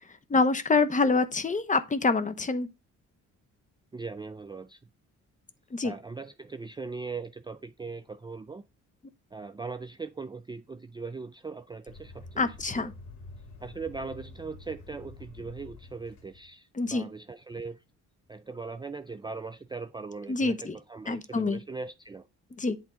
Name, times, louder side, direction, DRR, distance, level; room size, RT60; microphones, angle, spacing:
voice 1, 0.3-2.7 5.7-5.9 12.4-12.9 16.7-17.1 20.3-20.8 21.1-21.6 22.5-22.8, left 3 dB, 25° left, 0.9 m, -26 dB
voice 2, 3.9-4.8 5.8-8.6 9.3-12.9 13.6-17.8 18.3-22.2, right 4 dB, 15° right, 0.4 m, -40 dB
sound 1, 11.9-16.5, left 3 dB, 75° left, 2.7 m, -48 dB
8.4 x 3.6 x 5.0 m
cardioid pair, 90°, 30 cm